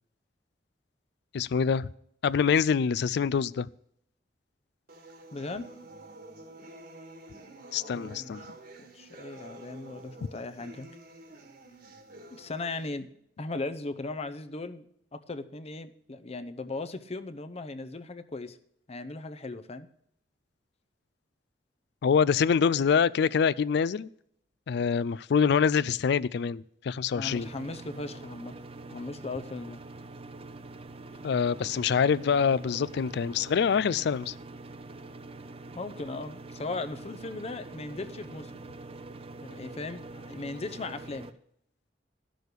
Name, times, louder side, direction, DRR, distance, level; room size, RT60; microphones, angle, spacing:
voice 1, 1.3-1.9 2.2-3.7 7.7-8.4 22.0-24.1 24.7-27.5 31.2-34.3, left 6 dB, 65° left, 0.4 m, -25 dB
sound 1, 4.9-12.9, right 1 dB, 60° right, 1.6 m, -49 dB
voice 2, 5.3-5.7 7.9-8.4 8.8-10.9 12.3-13.1 13.4-14.9 15.1-18.6 18.9-19.9 27.1-28.5 28.9-29.8 35.7-38.5 39.4-41.3, left 3 dB, 35° left, 0.7 m, -38 dB
sound 2, 27.2-41.3, right 2 dB, 30° right, 0.6 m, -45 dB
12.5 x 6.3 x 6.7 m
head